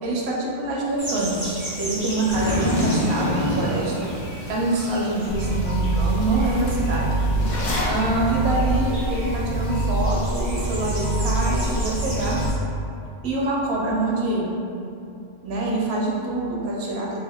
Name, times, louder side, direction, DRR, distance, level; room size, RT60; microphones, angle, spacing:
voice 1, 0.0-4.1 4.5-7.1 7.9-12.4 13.2-14.6 15.4-17.2, right 2 dB, 70° right, -3 dB, 0.8 m, -25 dB
sound 1, 1.0-12.5, right 1 dB, 25° right, 0.4 m, -36 dB
Zipper (clothing), 2.3-4.5 5.0-5.1 5.6-5.7 5.9-8.0, left 1 dB, 50° left, 0.6 m, -26 dB
sound 2, 5.3-12.5, right 2 dB, 80° left, 0.9 m, -25 dB
3.4 x 3.2 x 2.2 m, 2.7 s
omnidirectional pair, 1.2 m